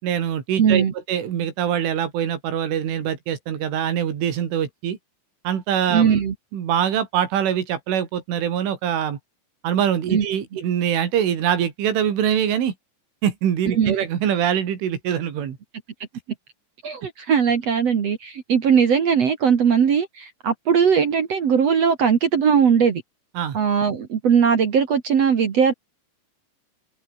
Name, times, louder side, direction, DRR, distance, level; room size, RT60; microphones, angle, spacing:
voice 1, 0.0-5.0 5.5-6.2 6.5-9.2 9.6-12.7 13.2-15.6 23.4-23.6, right 9 dB, 85° right, 5.7 m, -23 dB
voice 2, 0.6-0.9 5.9-6.3 10.1-10.3 13.7-13.9 16.8-23.0 23.5-25.7, right 7 dB, 50° right, 2.0 m, -19 dB
omnidirectional pair, 5.5 m